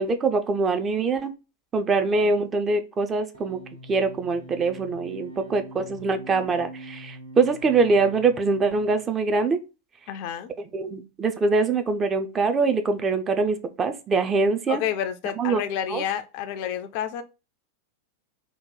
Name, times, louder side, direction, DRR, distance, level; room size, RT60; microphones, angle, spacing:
voice 1, 0.0-1.3 1.7-3.6 3.9-9.6 10.7-14.8 15.4-15.6 15.9-16.0, right 4 dB, 20° right, 0.4 m, -23 dB
sound 1, 3.3-9.0, right 1 dB, 75° right, 1.4 m, -43 dB
voice 2, 10.1-10.5 14.7-17.2, left 9 dB, 45° left, 0.3 m, -30 dB
2.9 x 2.2 x 3.7 m
figure-of-eight pair, 90°, 0 cm